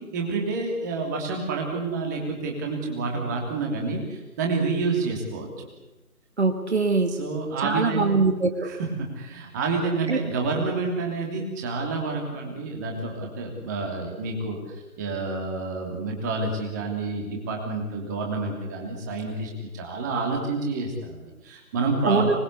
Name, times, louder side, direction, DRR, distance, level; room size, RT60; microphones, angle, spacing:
voice 1, 0.0-5.7 7.2-8.3 8.6-22.4, right 3 dB, 10° right, 1 dB, 3.0 m, -29 dB
voice 2, 6.4-7.1 7.6-8.7 10.1-10.2 22.1-22.4, right 4 dB, 45° right, 7 dB, 2.1 m, -22 dB
26.0 x 20.5 x 8.2 m, 1.1 s
figure-of-eight pair, 160°, 45 cm